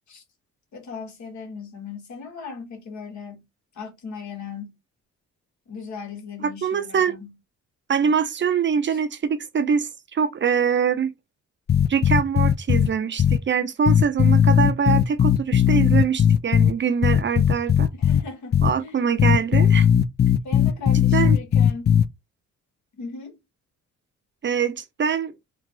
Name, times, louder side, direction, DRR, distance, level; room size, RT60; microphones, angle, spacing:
voice 1, 0.7-3.5 3.7-4.8 5.7-7.3 8.9-9.0 18.0-19.1 20.4-21.9 23.0-23.4, left 4 dB, 70° left, 2.0 m, -38 dB
voice 2, 6.4-7.2 7.9-11.1 11.9-17.9 18.6-19.9 21.1-21.4 24.4-25.3, right 7 dB, 40° right, 0.6 m, -23 dB
sound 1, 11.7-12.9 13.2-13.4 13.9-16.7 17.0-18.2 18.5-18.7 19.2-22.0, left 8 dB, 35° left, 0.4 m, -17 dB
4.1 x 2.5 x 4.5 m
cardioid pair, 90°, 30 cm